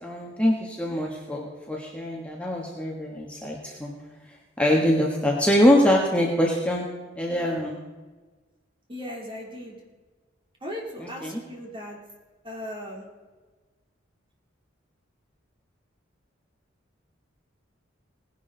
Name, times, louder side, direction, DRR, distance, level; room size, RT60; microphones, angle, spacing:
voice 1, 0.0-3.9 4.6-6.8 7.2-7.8 11.0-11.4, equal, 5° left, -2 dB, 1.5 m, -23 dB
voice 2, 8.9-9.7 10.6-12.0 12.4-13.0, left 1 dB, 25° right, -1 dB, 3.2 m, -37 dB
18.0 x 11.0 x 4.0 m, 1.3 s
head